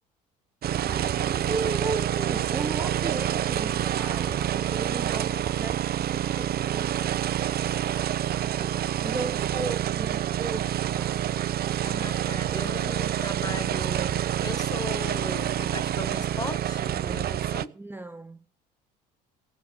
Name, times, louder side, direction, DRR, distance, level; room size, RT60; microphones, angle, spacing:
sound 1, 0.6-17.7, right 11 dB, 50° right, 0.8 m, -27 dB
voice 1, 0.8-7.0 8.4-11.2 17.7-18.4, right 3 dB, 10° right, 0.7 m, -36 dB
voice 2, 11.8-17.7, left 3 dB, 20° left, 1.5 m, -38 dB
17.0 x 6.7 x 8.8 m
supercardioid pair, 75°, 21 cm